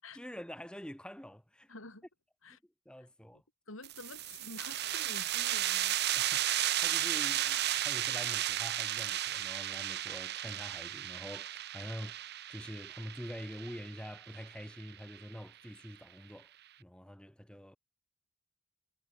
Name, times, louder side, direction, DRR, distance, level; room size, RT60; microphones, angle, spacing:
voice 1, 0.1-1.7 2.9-3.4 6.1-16.5 16.8-17.8, equal, 5° left, 1.6 m, -46 dB
voice 2, 1.7-2.0 2.4-2.6 3.3-3.4 3.7-6.0, left 2 dB, 75° left, 4.9 m, -49 dB
sound 1, 3.8-15.2, right 13 dB, 50° right, 0.7 m, -34 dB
head